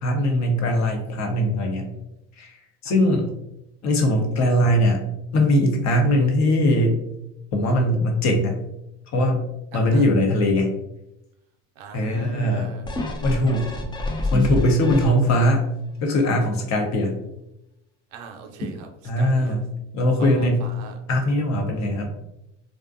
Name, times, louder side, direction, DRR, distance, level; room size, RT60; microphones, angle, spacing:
voice 1, 0.0-1.9 2.4-2.5 2.8-3.3 3.8-5.0 5.3-7.0 7.5-8.5 9.1-9.4 9.7-10.7 11.9-12.7 13.2-13.7 14.3-15.7 16.0-17.1 19.0-19.7 19.9-20.6 21.1-22.2, left 1 dB, 45° left, 2 dB, 0.7 m, -20 dB
voice 2, 2.8-3.3 9.7-10.1 11.8-12.9 18.1-18.9 19.2-19.6 20.2-21.0, right 5 dB, 80° right, 4 dB, 0.6 m, -39 dB
sound 1, 12.8-15.5 16.0-16.1, left 2 dB, 15° left, 0.3 m, -28 dB
2.5 x 2.2 x 2.4 m, 0.86 s
supercardioid pair, 85°, 38 cm